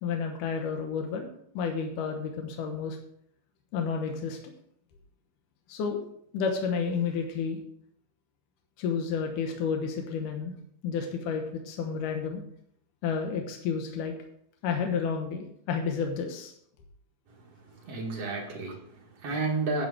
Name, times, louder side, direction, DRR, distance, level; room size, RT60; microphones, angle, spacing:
voice 1, 0.0-3.0 3.7-4.4 5.7-6.0 6.3-7.6 8.8-10.5 10.8-12.4 13.0-14.1 14.6-16.5, left 6 dB, 80° left, 3 dB, 2.7 m, -31 dB
voice 2, 17.6-19.9, right 3 dB, 55° right, 0 dB, 2.7 m, -32 dB
11.0 x 6.9 x 4.9 m, 0.67 s
omnidirectional pair, 3.6 m